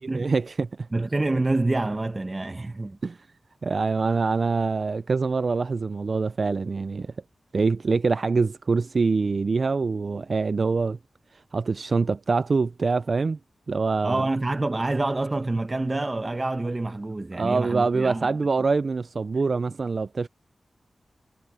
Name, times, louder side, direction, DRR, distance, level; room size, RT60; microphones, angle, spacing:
voice 1, 0.1-0.9 3.0-3.2 3.6-7.1 7.5-11.0 11.3-13.4 13.7-14.3 17.3-20.3, right 4 dB, 60° right, 0.4 m, -25 dB
voice 2, 0.9-3.0 14.0-18.3, right 2 dB, 30° right, 1.2 m, -27 dB
wide cardioid pair, 75°, 0 cm